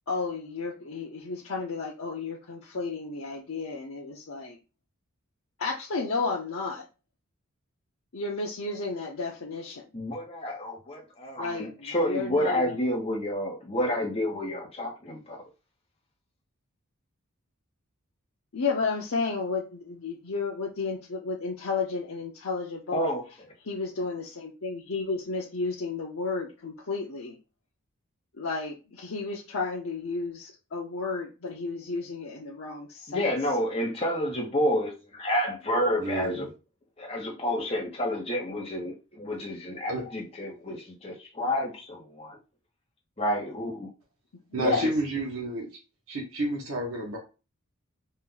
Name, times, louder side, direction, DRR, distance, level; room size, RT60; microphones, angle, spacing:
voice 1, 0.1-4.6 5.6-6.8 8.1-9.9 11.4-12.8 18.5-23.1 23.6-27.4 28.4-33.3 44.5-44.9, left 4 dB, 70° left, 0.7 m, -32 dB
voice 2, 9.9-15.4 22.9-23.3 33.1-36.5 37.0-42.4 43.2-43.9 44.6-44.9, equal, 25° left, 1.1 m, -29 dB
voice 3, 36.0-36.5 39.9-40.0 44.5-45.7 46.1-47.2, right 1 dB, 70° right, 1.2 m, -30 dB
4.2 x 2.5 x 3.9 m
head